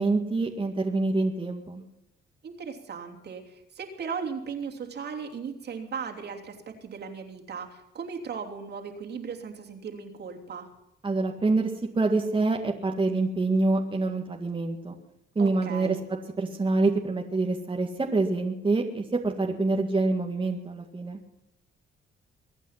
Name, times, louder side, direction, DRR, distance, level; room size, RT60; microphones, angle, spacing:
voice 1, 0.0-1.8 11.0-14.9 15.4-16.0 16.4-21.2, right 3 dB, 25° right, 2 dB, 2.0 m, -26 dB
voice 2, 2.4-10.7 15.4-16.0, right 6 dB, 55° right, 2 dB, 3.2 m, -37 dB
23.5 x 9.1 x 5.9 m, 0.87 s
cardioid pair, 90°, 20 cm